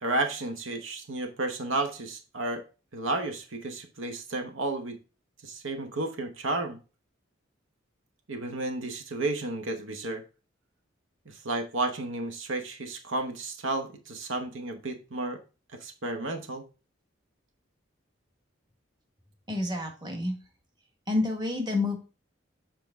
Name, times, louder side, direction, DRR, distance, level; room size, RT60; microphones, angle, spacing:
voice 1, 0.0-2.6 2.9-5.0 5.4-6.8 8.3-10.2 11.3-15.4 15.8-16.6, right 2 dB, 80° right, 6 dB, 1.1 m, -32 dB
voice 2, 19.5-20.3 21.1-22.0, left 2 dB, 20° right, 3 dB, 1.4 m, -28 dB
7.6 x 4.5 x 3.6 m, 0.33 s
head